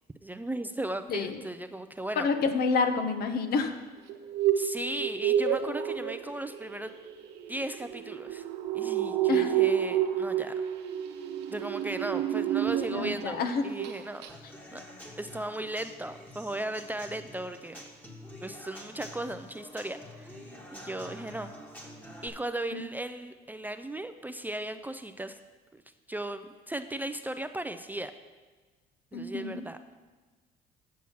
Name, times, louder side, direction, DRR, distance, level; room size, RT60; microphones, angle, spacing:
voice 1, 0.2-2.3 4.5-6.9 7.5-8.4 8.7-10.5 11.5-14.3 14.7-14.8 15.2-17.8 18.4-20.4 20.7-21.5 22.2-25.4 25.7-25.8 26.1-28.1 29.1-29.8, right 1 dB, 10° right, 9 dB, 0.3 m, -36 dB
voice 2, 1.1-1.4 2.2-3.8 9.3-9.5 12.9-13.7 22.7-22.8 29.1-29.6, left 4 dB, 65° left, 8 dB, 0.8 m, -28 dB
sound 1, 4.1-13.3 13.6-14.0 14.2-14.3, right 10 dB, 90° right, 0.8 m, -30 dB
Human voice / Acoustic guitar / Drum, 14.3-22.3, left 1 dB, 10° left, 1.3 m, -47 dB
8.4 x 6.1 x 5.7 m, 1.3 s
cardioid pair, 110°, 17 cm